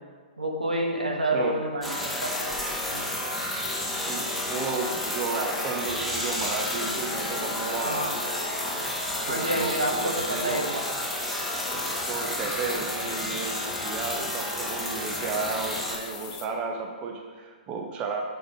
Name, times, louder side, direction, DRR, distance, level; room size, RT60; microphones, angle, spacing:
voice 1, 0.4-2.3 2.9-3.1 7.6-8.1 9.3-10.8, right 1 dB, 80° right, 1 dB, 1.3 m, -28 dB
sound 1, 1.8-16.0, left 1 dB, ahead, 1.2 m, -31 dB
sound 2, 2.3-16.5, left 10 dB, 35° left, 0.6 m, -41 dB
voice 2, 4.0-8.4 9.3-10.6 11.7-18.2, right 4 dB, 25° right, 2 dB, 0.7 m, -33 dB
6.3 x 6.2 x 4.8 m, 1.5 s
figure-of-eight pair, 115°, 4 cm